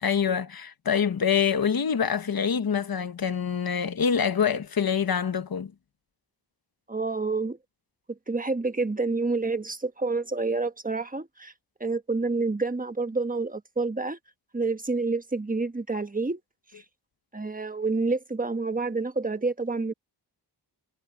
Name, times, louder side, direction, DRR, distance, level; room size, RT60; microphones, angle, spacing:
voice 1, 0.0-5.7, left 7 dB, 55° left, 1.2 m, -25 dB
voice 2, 6.9-7.6 8.3-11.5 11.8-14.2 14.5-16.4 17.3-19.9, right 3 dB, 20° right, 1.2 m, -28 dB
wide cardioid pair, 95°, 42 cm